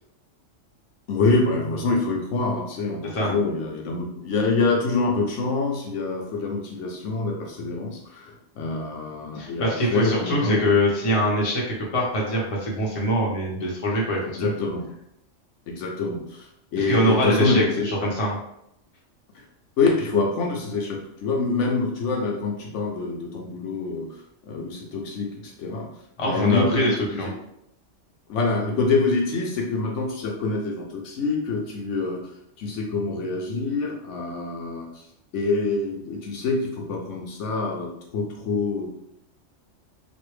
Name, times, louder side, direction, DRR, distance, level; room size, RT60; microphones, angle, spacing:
voice 1, 1.1-10.8 14.3-14.9 15.7-17.9 19.3-19.4 19.8-24.2 24.4-25.9 26.3-27.3 28.3-32.2 32.6-35.1 35.3-38.9, left 3 dB, 75° left, 0 dB, 0.9 m, -26 dB
voice 2, 9.3-14.5 16.9-18.4 26.2-26.9 27.2-27.3, equal, 30° left, -3 dB, 0.7 m, -23 dB
3.1 x 2.5 x 3.1 m, 0.78 s
omnidirectional pair, 1.3 m